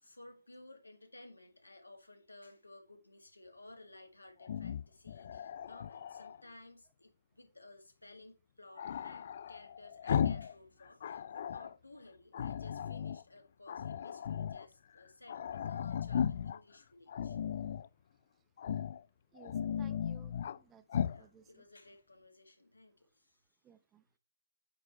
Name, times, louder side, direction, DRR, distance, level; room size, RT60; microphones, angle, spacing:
voice 1, 0.0-17.4 21.1-23.4, left 2 dB, 85° left, 1.9 m, -57 dB
Growling, 4.4-6.4 8.8-10.5 10.8-11.7 12.3-13.2 13.7-14.7 15.0-15.1 15.3-16.6 17.1-17.9 18.6-19.0 19.4-20.6 20.9-21.2, left 8 dB, 45° left, 0.3 m, -36 dB
voice 2, 19.3-20.8 21.2-21.6 23.6-24.0, right 9 dB, 15° right, 0.5 m, -60 dB
8.9 x 3.7 x 4.2 m
figure-of-eight pair, 140°, 0 cm